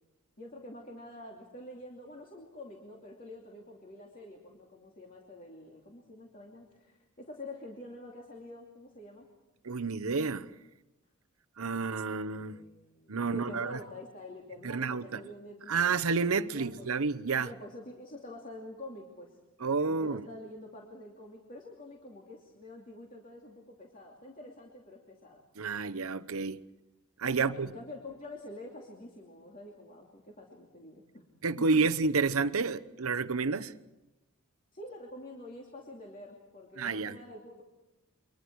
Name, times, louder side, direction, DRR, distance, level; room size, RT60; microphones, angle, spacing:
voice 1, 0.4-9.3 11.7-11.8 12.1-15.8 16.4-16.9 17.4-19.4 19.8-25.4 27.4-31.2 31.6-31.7 34.7-37.6, left 1 dB, 40° left, 2.8 m, -47 dB
voice 2, 9.6-10.5 11.6-12.6 13.1-13.8 14.6-15.2 15.7-17.5 19.6-20.2 25.6-26.6 27.2-27.7 31.4-33.7 36.8-37.1, right 4 dB, 75° right, 0.9 m, -30 dB
29.5 x 24.0 x 4.7 m
head